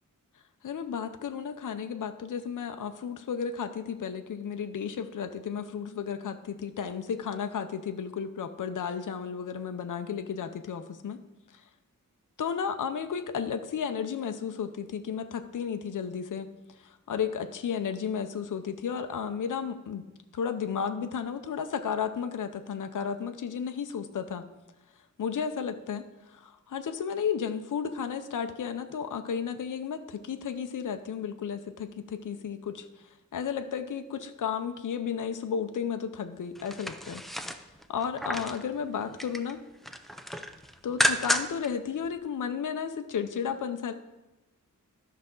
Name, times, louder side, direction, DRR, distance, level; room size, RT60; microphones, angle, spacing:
voice 1, 0.6-11.2 11.5-11.6 12.4-16.5 16.8-20.0 20.3-24.4 25.2-37.2 37.9-39.6 40.8-43.9, left 7 dB, 70° left, 8 dB, 0.6 m, -33 dB
sound 1, 36.6-38.6 39.0-39.5 39.8-41.7 42.0-42.1, equal, ahead, 0.5 m, -31 dB
13.0 x 5.9 x 3.7 m, 1.0 s
wide cardioid pair, 120°, 33 cm